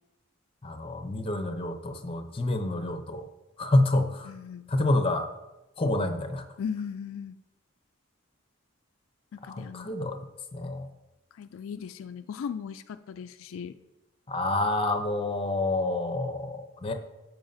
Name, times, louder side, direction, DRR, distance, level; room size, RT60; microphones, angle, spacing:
voice 1, 0.6-3.3 3.6-4.3 4.7-5.3 5.8-6.4 9.4-10.2 10.5-10.9 14.3-16.9, left 2 dB, 25° left, 6 dB, 0.6 m, -28 dB
voice 2, 4.3-4.7 6.6-7.4 9.3-9.9 11.4-13.7, left 7 dB, 80° left, 10 dB, 0.3 m, -37 dB
12.5 x 4.7 x 2.7 m, 0.99 s
head